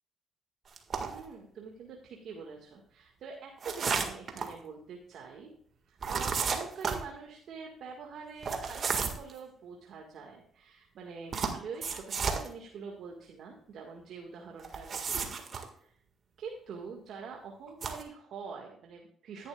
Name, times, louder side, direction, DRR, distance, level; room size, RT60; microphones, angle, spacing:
sound 1, 0.8-1.2 3.6-4.5 6.0-7.0 8.4-9.3 11.3-12.5 14.6-15.6 17.7-18.0, right 5 dB, 50° right, 1.8 m, -32 dB
voice 1, 1.1-5.5 5.9-15.4 15.8-15.9 16.4-19.5, right 5 dB, 70° right, 1 dB, 1.8 m, -45 dB
13.0 x 11.0 x 2.4 m, 0.63 s
cardioid pair, 80°, 0 cm